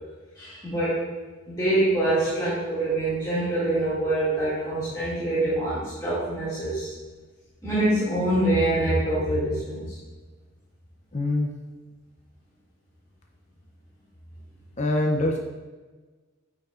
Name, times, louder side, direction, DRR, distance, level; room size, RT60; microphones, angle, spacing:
voice 1, 0.4-1.0 1.5-6.9 7.6-9.9, right 1 dB, 20° left, -13 dB, 2.1 m, -25 dB
voice 2, 11.1-11.6 14.8-15.4, left 1 dB, 35° left, 1 dB, 0.5 m, -24 dB
9.0 x 5.5 x 2.5 m, 1.3 s
head